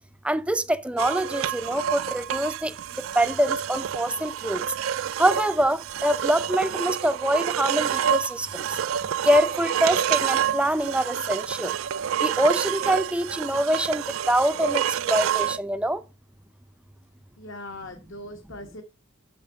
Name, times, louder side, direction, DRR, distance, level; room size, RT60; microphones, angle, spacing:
voice 1, 0.2-2.7 3.2-4.6 5.2-8.6 9.2-11.7 12.2-16.0, right 1 dB, 5° right, 0.4 m, -24 dB
sound 1, 1.0-15.6, right 9 dB, 80° right, 0.4 m, -28 dB
voice 2, 17.4-18.8, left 1 dB, 65° left, 1.4 m, -40 dB
7.7 x 6.3 x 6.7 m
head